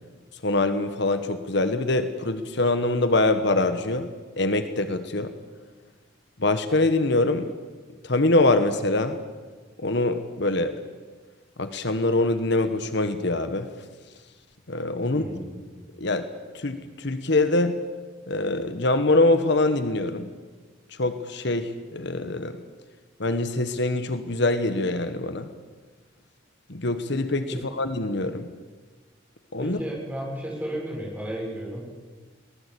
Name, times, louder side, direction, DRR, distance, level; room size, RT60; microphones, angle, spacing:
voice 1, 0.4-4.1 4.4-5.3 6.4-7.5 8.0-9.2 9.8-10.7 11.6-13.7 14.7-15.2 16.0-16.2 16.5-17.8 18.3-20.3 21.0-22.6 23.2-25.5 26.7-28.5 29.5-29.8, left 2 dB, 60° left, 10 dB, 1.3 m, -24 dB
voice 2, 15.0-15.7 29.6-31.9, equal, 10° right, -3 dB, 7.0 m, -33 dB
23.5 x 19.0 x 8.4 m, 1.4 s
head